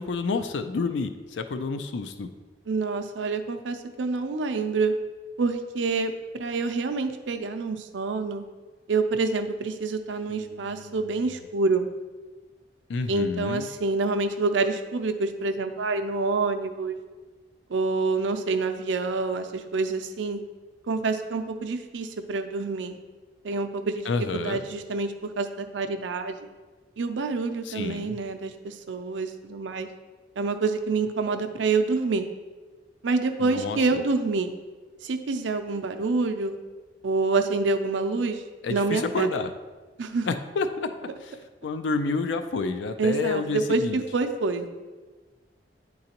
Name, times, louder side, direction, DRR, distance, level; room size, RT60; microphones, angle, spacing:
voice 1, 0.0-2.3 10.3-11.1 12.9-13.7 24.0-24.6 27.6-28.2 33.4-34.0 38.6-39.5 40.2-41.4 41.6-44.0, left 4 dB, 75° left, 8 dB, 0.4 m, -29 dB
voice 2, 2.7-4.9 5.4-6.1 6.4-8.4 8.9-11.9 13.1-17.0 17.7-20.4 20.9-23.0 23.4-24.1 24.3-26.4 27.0-29.9 30.4-32.3 33.0-34.5 35.0-36.6 37.0-38.4 38.7-39.3 40.0-40.3 43.0-43.8 44.1-44.7, right 3 dB, 85° right, 7 dB, 0.5 m, -27 dB
9.5 x 3.9 x 2.9 m, 1.3 s
head